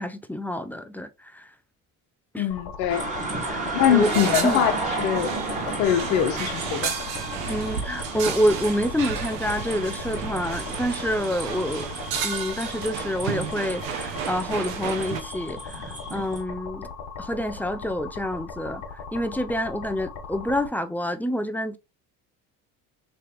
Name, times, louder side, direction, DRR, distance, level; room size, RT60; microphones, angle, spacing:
voice 1, 0.0-1.4 2.3-2.5 3.5-3.6 3.9-4.1 4.4-4.6 7.4-11.9 12.2-16.9 17.2-18.8 19.1-21.8, equal, 5° left, 0.3 m, -27 dB
voice 2, 2.4-3.1 3.7-5.3 5.7-7.0, left 9 dB, 75° left, 0.8 m, -23 dB
sound 1, 2.5-20.7, left 5 dB, 60° left, 1.3 m, -38 dB
sound 2, 2.9-16.4, right 2 dB, 20° right, 1.5 m, -34 dB
sound 3, 4.0-15.2, right 7 dB, 90° right, 0.8 m, -32 dB
3.3 x 3.1 x 3.0 m
hypercardioid pair, 70°, 40 cm